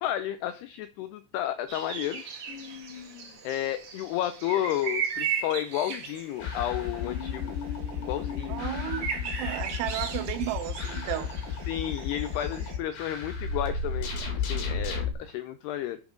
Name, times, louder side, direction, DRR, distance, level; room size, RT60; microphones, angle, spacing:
voice 1, 0.0-2.2 3.4-7.6 7.9-8.6 11.7-16.0, left 12 dB, 85° left, 2.3 m, -32 dB
sound 1, 1.7-12.8, right 6 dB, 65° right, 1.4 m, -37 dB
sound 2, 2.5-3.6 6.7-9.8, left 8 dB, 35° left, 3.0 m, -42 dB
sound 3, 6.4-15.1, left 5 dB, 55° left, 3.7 m, -33 dB
voice 2, 8.5-9.0 9.4-11.3, right 13 dB, 80° right, 3.2 m, -33 dB
7.9 x 7.3 x 5.1 m
omnidirectional pair, 5.4 m